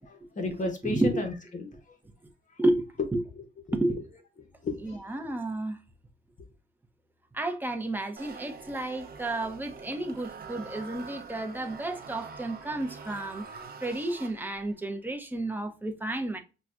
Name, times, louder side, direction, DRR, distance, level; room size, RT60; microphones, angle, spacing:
voice 1, 0.1-2.0 3.0-3.1 3.4-4.0 4.4-5.2, left 3 dB, 40° left, 1.1 m, -35 dB
voice 2, 0.8-1.2 2.6-2.8 3.1-3.2 3.7-4.0 4.8-5.8 7.3-16.4, right 1 dB, 10° right, 0.8 m, -31 dB
sound 1, 8.2-14.8, right 5 dB, 50° right, 0.8 m, -45 dB
5.9 x 2.3 x 2.5 m
cardioid pair, 90°, 20 cm